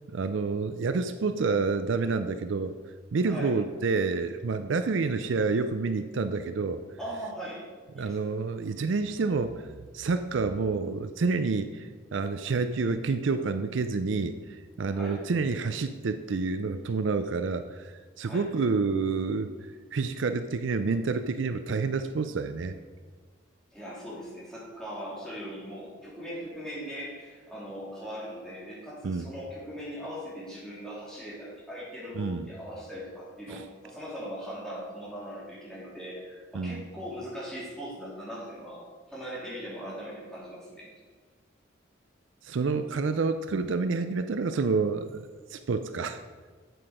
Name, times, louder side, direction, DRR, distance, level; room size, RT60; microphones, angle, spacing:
voice 1, 0.1-2.8 3.1-6.8 8.0-9.6 9.9-22.7 29.0-29.3 32.1-32.5 33.5-33.6 36.5-36.8 42.4-46.2, right 4 dB, 65° right, 10 dB, 0.5 m, -28 dB
voice 2, 3.2-3.5 7.0-7.7 7.9-8.3 14.9-15.3 18.2-18.5 23.7-40.9, equal, 5° left, -7 dB, 3.0 m, -40 dB
7.8 x 7.8 x 5.0 m, 1.4 s
head